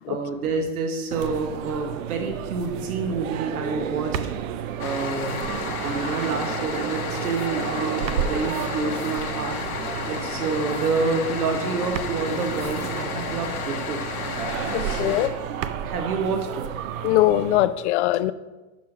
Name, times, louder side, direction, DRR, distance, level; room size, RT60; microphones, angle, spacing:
voice 1, 0.0-4.2 4.5-5.5 5.8-14.1 14.8-15.0 15.8-16.7, right 4 dB, 80° right, 4 dB, 1.0 m, -28 dB
sound 1, 1.1-17.7, right 9 dB, 65° right, 0.6 m, -32 dB
sound 2, 4.8-15.3, left 5 dB, 85° left, 1.2 m, -32 dB
voice 2, 14.7-15.3 17.0-18.3, left 15 dB, 55° left, 15 dB, 0.5 m, -21 dB
6.6 x 5.0 x 5.7 m, 1.1 s
hypercardioid pair, 105°, 43 cm